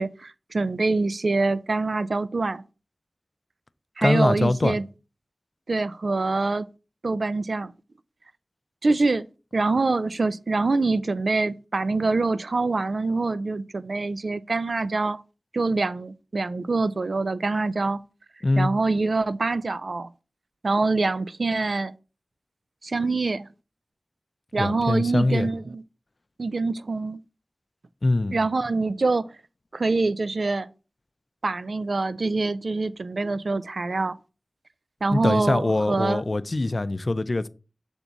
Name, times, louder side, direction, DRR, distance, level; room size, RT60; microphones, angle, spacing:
voice 1, 0.0-2.6 4.0-4.8 5.7-6.7 7.0-7.7 8.8-9.3 9.5-15.2 15.5-18.0 18.6-20.1 20.6-21.9 22.8-23.5 24.5-25.8 26.4-27.2 28.3-29.3 29.7-30.7 31.4-34.2 35.0-36.2, right 3 dB, 80° right, 0.3 m, -25 dB
voice 2, 4.0-4.7 18.4-18.7 24.6-25.5 28.0-28.4 35.1-37.5, left 2 dB, 55° left, 0.4 m, -23 dB
7.2 x 3.5 x 4.0 m
wide cardioid pair, 60°, 0 cm